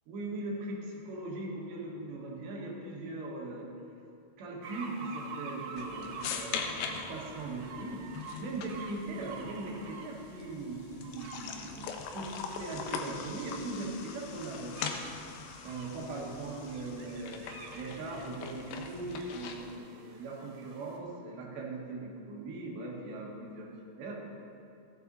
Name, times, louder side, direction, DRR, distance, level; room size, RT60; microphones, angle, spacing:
voice 1, 0.1-3.7 4.4-8.1 8.4-14.8 15.6-17.5 17.7-23.7 24.0-24.3, right 2 dB, 65° right, -2 dB, 3.6 m, -40 dB
sound 1, 4.6-21.0, right 5 dB, 85° right, 3.9 m, -49 dB
sound 2, 5.8-19.8, left 6 dB, 80° left, 2.5 m, -42 dB
15.5 x 11.5 x 4.1 m, 2.6 s
omnidirectional pair, 5.8 m